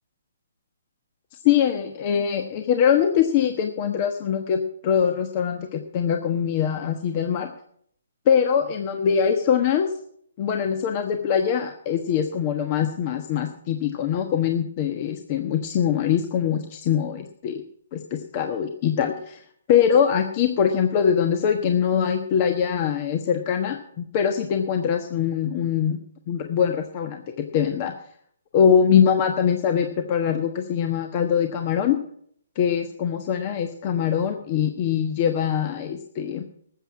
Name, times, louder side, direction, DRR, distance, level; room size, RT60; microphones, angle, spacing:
voice 1, 1.4-7.5 8.3-9.9 10.4-17.6 17.9-19.4 19.7-26.0 26.3-27.9 28.5-32.0 32.6-36.4, left 8 dB, 35° left, 5 dB, 1.2 m, -23 dB
13.5 x 7.9 x 7.3 m, 0.64 s
hypercardioid pair, 155°, 0 cm